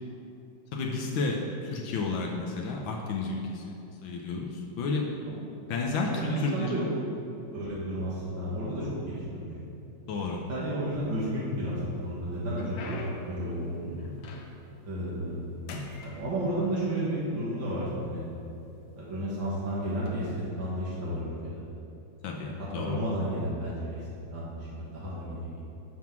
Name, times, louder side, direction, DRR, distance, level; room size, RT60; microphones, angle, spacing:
voice 1, 0.7-3.7 4.0-5.4 5.7-6.8 10.1-10.4 22.2-23.0, left 3 dB, 85° left, 0 dB, 1.6 m, -32 dB
voice 2, 6.1-6.8 7.5-9.5 10.2-14.0 14.8-15.4 16.0-18.3 19.0-21.6 22.4-25.7, right 1 dB, 75° right, -8 dB, 2.3 m, -32 dB
sound 1, 10.8-11.6 12.0-14.8 15.1-15.4 15.7-16.9 17.7-17.8 18.5-18.7 19.9-20.1, left 3 dB, 70° left, 1.4 m, -43 dB
10.5 x 3.7 x 5.9 m, 2.8 s
omnidirectional pair, 2.1 m